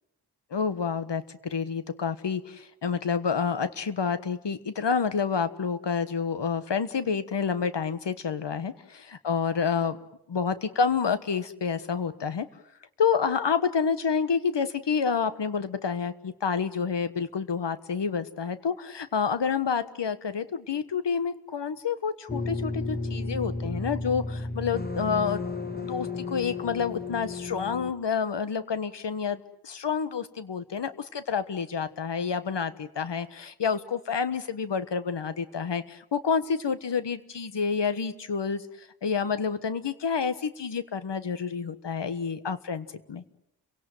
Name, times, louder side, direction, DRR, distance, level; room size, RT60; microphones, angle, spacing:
voice 1, 0.5-10.0 10.3-12.5 13.0-25.4 25.8-43.2, left 6 dB, 80° left, 12 dB, 1.4 m, -29 dB
sound 1, 22.3-27.9, left 3 dB, 20° left, 2.2 m, -33 dB
30.0 x 17.5 x 9.2 m, 0.80 s
cardioid pair, 40°, 42 cm